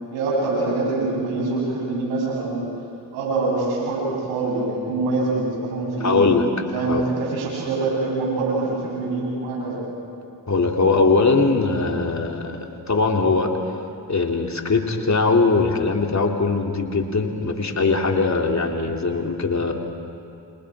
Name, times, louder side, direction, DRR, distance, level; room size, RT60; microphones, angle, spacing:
voice 1, 0.1-2.7 3.1-6.2 6.7-9.8, right 3 dB, 90° right, -4 dB, 8.0 m, -24 dB
voice 2, 6.0-6.4 6.8-7.0 10.5-12.6 12.9-13.5 14.1-19.7, left 3 dB, 40° left, 2 dB, 3.2 m, -20 dB
29.0 x 27.5 x 5.0 m, 2.6 s
supercardioid pair, 45°, 44 cm